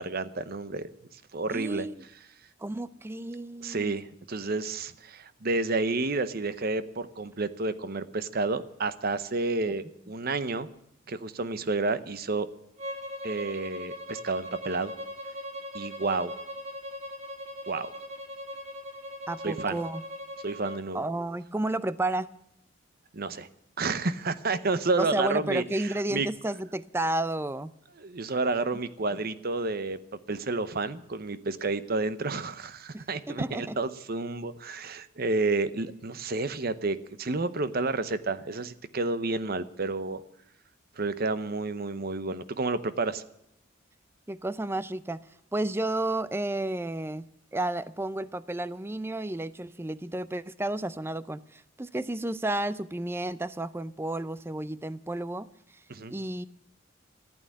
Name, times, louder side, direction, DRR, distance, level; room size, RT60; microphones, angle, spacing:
voice 1, 0.0-1.9 3.6-10.7 11.1-12.5 13.2-14.9 15.7-16.3 17.7-17.9 19.4-19.8 20.4-21.0 23.1-23.5 23.8-26.3 28.0-30.0 30.3-40.2 41.0-43.2 55.9-56.1, right 3 dB, 50° right, 14 dB, 0.8 m, -30 dB
voice 2, 1.5-2.0 2.6-3.9 9.6-9.7 19.3-20.0 20.9-22.3 25.0-27.7 32.9-33.8 44.3-45.2 45.5-55.5 56.1-56.5, right 1 dB, 10° right, 16 dB, 0.5 m, -32 dB
Bowed string instrument, 12.8-20.8, equal, 35° right, 1.9 m, -40 dB
15.0 x 8.9 x 9.9 m, 0.79 s
head